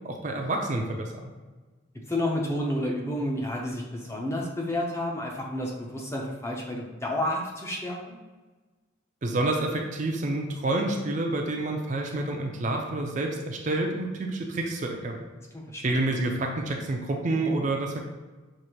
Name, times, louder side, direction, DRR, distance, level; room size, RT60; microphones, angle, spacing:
voice 1, 0.0-1.3 9.2-15.2 15.8-18.0, right 2 dB, 35° right, 1 dB, 0.4 m, -28 dB
voice 2, 2.1-8.2 15.5-15.8, left 1 dB, 15° left, -1 dB, 0.5 m, -30 dB
6.3 x 2.6 x 2.9 m, 1.3 s
head